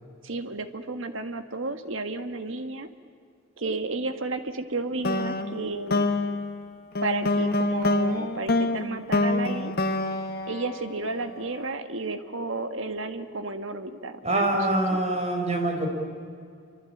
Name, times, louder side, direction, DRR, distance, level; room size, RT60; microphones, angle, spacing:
voice 1, 0.2-2.9 3.6-6.1 7.0-9.8 10.5-14.7 14.9-15.0, right 3 dB, 65° right, 8 dB, 1.8 m, -32 dB
sound 1, 5.0-11.5, left 2 dB, 45° left, 1.5 m, -27 dB
voice 2, 14.2-15.9, right 1 dB, 30° right, 3 dB, 5.0 m, -25 dB
27.0 x 25.0 x 8.7 m, 2.2 s
head